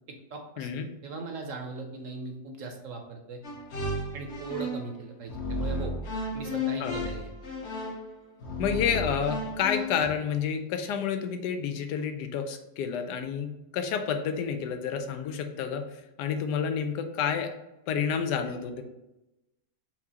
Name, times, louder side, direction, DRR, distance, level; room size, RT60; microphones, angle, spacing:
voice 1, 0.1-3.4 4.1-5.9 6.3-7.3, right 3 dB, 65° right, 3 dB, 0.9 m, -39 dB
sound 1, 3.4-4.9 5.3-10.1, left 2 dB, 50° left, 1.0 m, -33 dB
voice 2, 8.6-13.5 13.7-15.8 16.2-17.5 17.9-18.8, left 7 dB, 90° left, 7 dB, 1.2 m, -29 dB
4.7 x 3.6 x 2.8 m, 0.95 s
omnidirectional pair, 1.7 m